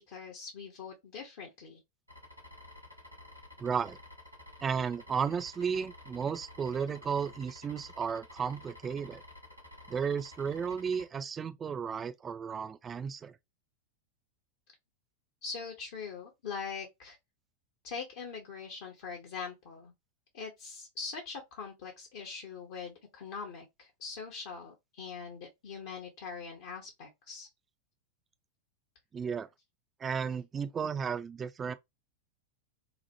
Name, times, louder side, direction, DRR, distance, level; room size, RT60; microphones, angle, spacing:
voice 1, 0.1-1.8 15.4-17.2 17.8-19.9 20.3-27.5, left 5 dB, 50° left, 0.7 m, -42 dB
sound 1, 2.1-11.1, left 1 dB, 90° right, 1.0 m, -52 dB
voice 2, 3.6-4.0 4.6-9.2 9.9-13.4 29.1-29.5 30.0-31.7, right 6 dB, 20° right, 0.3 m, -34 dB
2.9 x 2.0 x 2.8 m
figure-of-eight pair, 90°, 0 cm